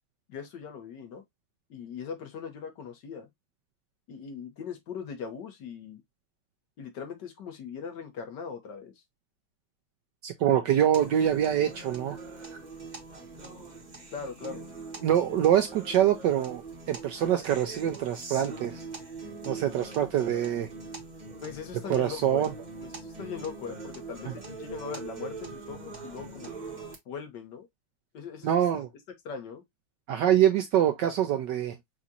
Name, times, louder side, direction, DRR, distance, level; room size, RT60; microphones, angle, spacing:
voice 1, 0.3-1.2 1.7-3.3 4.1-6.0 6.8-8.9 14.1-14.7 21.4-22.4 22.8-26.7 27.1-27.7 28.1-28.6 29.2-29.6, left 6 dB, 60° left, 1.7 m, -40 dB
voice 2, 10.2-12.2 15.0-16.6 16.9-18.8 19.4-20.7 21.9-22.5 28.4-28.9 30.1-31.8, right 10 dB, 70° right, 1.0 m, -25 dB
sound 1, 10.9-26.9, right 3 dB, 30° right, 1.0 m, -42 dB
6.2 x 2.5 x 2.7 m
omnidirectional pair, 2.4 m